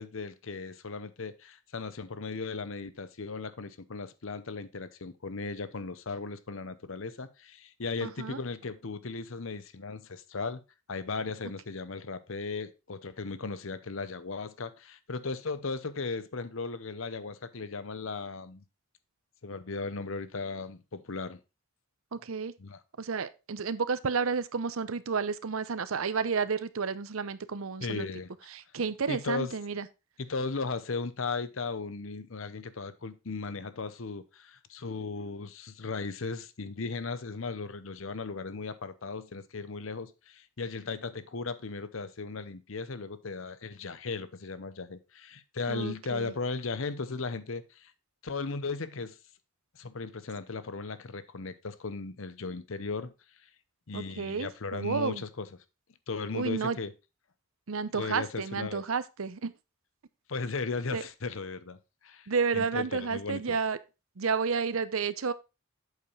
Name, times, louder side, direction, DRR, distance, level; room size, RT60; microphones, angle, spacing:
voice 1, 0.0-10.6 10.9-18.6 19.4-21.4 22.6-22.8 27.8-28.3 29.1-29.5 30.2-47.9 48.2-49.2 49.7-53.1 53.9-55.5 56.1-56.9 57.9-58.8 60.3-61.8 62.0-62.3 62.5-63.6, left 4 dB, 65° left, 0.8 m, -36 dB
voice 2, 8.0-8.4 22.1-22.5 23.0-28.1 28.5-29.9 45.7-46.3 53.9-55.2 56.3-56.8 57.7-59.5 60.9-61.0 62.3-63.8 64.2-65.3, right 5 dB, 75° right, 0.7 m, -31 dB
8.1 x 7.1 x 3.2 m
head